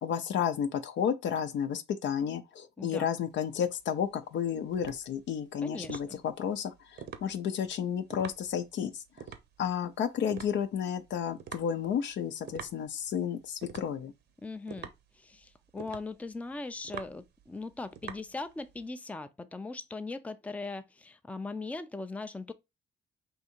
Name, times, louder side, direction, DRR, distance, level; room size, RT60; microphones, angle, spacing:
voice 1, 0.0-9.0 9.6-14.1, left 8 dB, 65° left, 0.6 m, -32 dB
voice 2, 2.8-3.1 5.6-6.2 14.4-22.5, left 3 dB, 5° left, 0.4 m, -40 dB
sound 1, 3.3-18.9, right 8 dB, 60° right, 0.7 m, -47 dB
3.6 x 2.7 x 4.3 m
cardioid pair, 90°, 20 cm